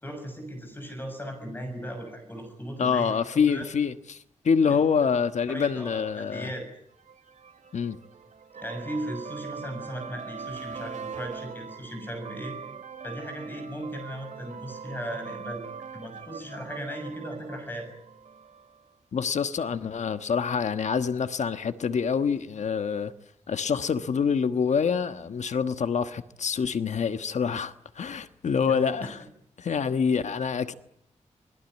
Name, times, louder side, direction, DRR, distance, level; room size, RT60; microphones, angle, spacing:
voice 1, 0.0-3.6 5.5-6.7 8.6-12.6 13.0-15.6 15.9-17.9 28.6-28.8, equal, 15° left, 6.7 m, -37 dB
voice 2, 2.8-6.5 7.7-8.0 19.1-23.1 23.5-29.2 29.6-30.7, left 6 dB, 70° left, 1.3 m, -26 dB
sound 1, 7.0-18.8, right 6 dB, 80° right, 2.4 m, -42 dB
27.5 x 21.0 x 9.6 m
wide cardioid pair, 160°, 12 cm